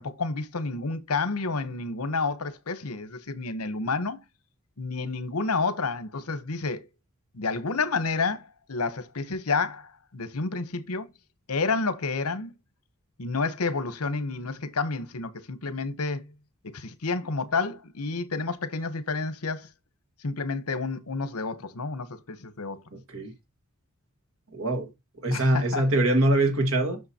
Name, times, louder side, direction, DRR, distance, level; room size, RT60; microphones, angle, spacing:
voice 1, 0.0-4.2 4.8-6.9 7.3-11.1 11.5-12.5 13.2-16.3 16.7-19.7 20.2-22.8 25.3-25.8, left 4 dB, 80° left, 1.1 m, -30 dB
voice 2, 22.9-23.3 24.5-24.9 25.2-27.0, right 1 dB, 65° right, 1.9 m, -23 dB
7.8 x 6.3 x 2.9 m
head